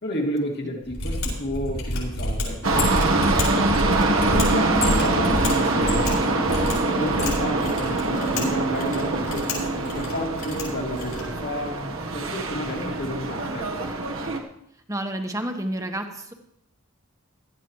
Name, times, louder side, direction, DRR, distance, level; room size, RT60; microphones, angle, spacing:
voice 1, 0.0-2.6 4.2-13.9, left 1 dB, 55° left, 0 dB, 2.5 m, -31 dB
Mechanisms, 0.9-11.4, left 1 dB, 75° left, 6.7 m, -29 dB
sound 1, 2.6-14.4, right 2 dB, 70° right, 1.4 m, -24 dB
voice 2, 14.9-16.3, right 1 dB, 15° right, 5 dB, 1.3 m, -29 dB
18.0 x 13.0 x 3.2 m, 0.75 s
head